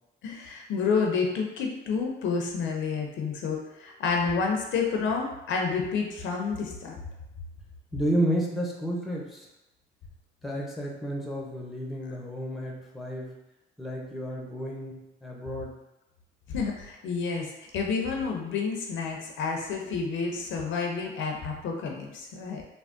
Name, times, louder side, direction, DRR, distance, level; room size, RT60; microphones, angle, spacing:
voice 1, 0.2-7.0 16.5-17.5 17.7-22.6, left 5 dB, 75° left, 1 dB, 0.6 m, -29 dB
voice 2, 7.9-9.5 10.4-13.3 13.8-15.7, right 1 dB, ahead, -2 dB, 0.6 m, -31 dB
3.4 x 2.0 x 2.5 m, 0.92 s
cardioid pair, 90°, 20 cm